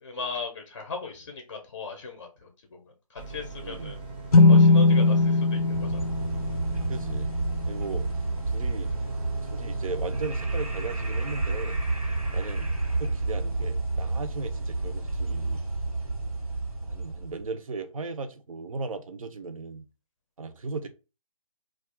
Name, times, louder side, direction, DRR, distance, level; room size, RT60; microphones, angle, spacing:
voice 1, 0.0-4.0 4.4-6.0, left 4 dB, 35° left, 0.5 m, -38 dB
sound 1, 3.2-15.0, right 3 dB, 15° right, 0.5 m, -41 dB
voice 2, 3.6-3.9 6.9-7.3 7.7-8.0 8.5-8.9 9.5-11.8 12.3-15.6 16.8-19.8 20.4-20.9, right 4 dB, 65° right, 0.5 m, -37 dB
sound 2, 4.3-7.9, left 3 dB, 85° left, 0.4 m, -20 dB
sound 3, 5.5-17.4, right 2 dB, 85° right, 1.2 m, -30 dB
2.3 x 2.2 x 3.4 m
figure-of-eight pair, 160°, 18 cm